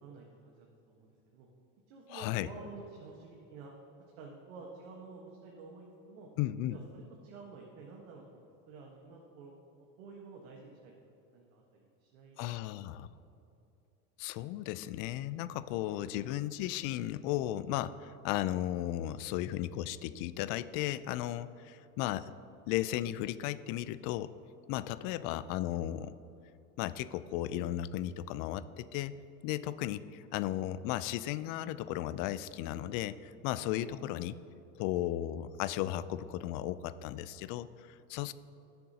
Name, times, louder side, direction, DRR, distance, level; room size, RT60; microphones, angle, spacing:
voice 1, 0.0-1.5 1.9-3.7 4.2-6.3 6.7-9.5 10.0-10.9 11.3-12.8 25.0-25.2 33.7-34.4 38.1-38.3, right 4 dB, 75° right, -1 dB, 1.4 m, -51 dB
voice 2, 2.1-2.5 6.4-6.8 12.4-13.1 14.2-22.4 22.7-24.3 24.7-26.1 26.8-29.1 29.4-34.3 34.7-38.3, left 13 dB, 50° left, 15 dB, 0.4 m, -35 dB
17.0 x 6.7 x 2.8 m, 2.8 s
supercardioid pair, 115°, 41 cm